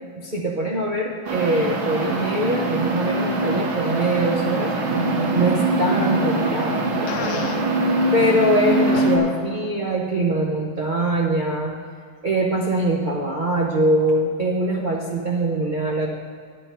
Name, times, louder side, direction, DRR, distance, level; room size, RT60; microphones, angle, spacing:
voice 1, 0.2-4.7 5.3-7.6 8.1-11.7 12.2-16.1, right 1 dB, 65° right, -1 dB, 0.4 m, -23 dB
sound 1, 1.3-9.2, right 2 dB, 80° right, 2.0 m, -23 dB
Fart, 7.1-7.6 8.9-9.1, left 8 dB, 65° left, 1.0 m, -31 dB
11.0 x 7.7 x 5.5 m, 2.1 s
omnidirectional pair, 2.2 m